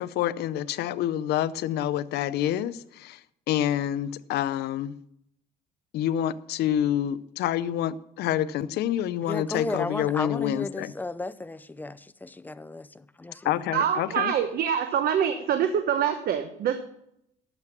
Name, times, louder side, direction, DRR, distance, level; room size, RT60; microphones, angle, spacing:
voice 1, 0.0-3.2 3.5-4.9 5.9-10.9 13.4-14.3, left 11 dB, 75° left, 0.6 m, -27 dB
voice 2, 9.3-13.5, left 2 dB, 10° left, 0.5 m, -34 dB
voice 3, 13.7-16.8, right 8 dB, 65° right, 1.0 m, -25 dB
12.0 x 7.9 x 5.9 m
cardioid pair, 110°, 17 cm